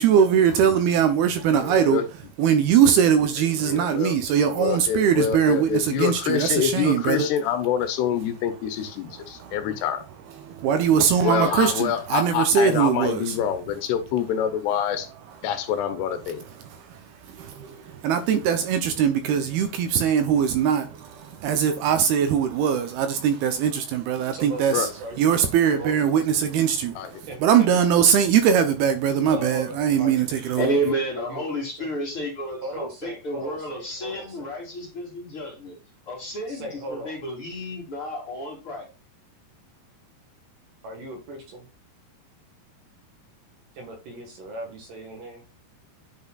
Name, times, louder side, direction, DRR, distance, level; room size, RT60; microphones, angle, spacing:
voice 1, 0.0-2.0 2.4-7.3 9.2-9.7 10.4-13.4 16.6-24.9 25.2-30.7, right 8 dB, 75° right, 2.6 m, -21 dB
voice 2, 1.6-2.1 3.6-4.2 4.6-10.0 11.2-15.1 15.4-16.4 24.7-24.9 27.0-27.1, left 9 dB, 80° left, 3.0 m, -26 dB
voice 3, 24.3-25.2 25.7-26.2 27.3-27.7 29.2-30.2 31.2-31.9 32.6-34.5 36.5-37.2 40.8-41.7 43.7-45.4, right 1 dB, 60° right, 2.9 m, -38 dB
voice 4, 30.6-35.8 36.1-38.9, right 1 dB, 35° left, 3.3 m, -30 dB
9.7 x 5.4 x 2.4 m
omnidirectional pair, 4.8 m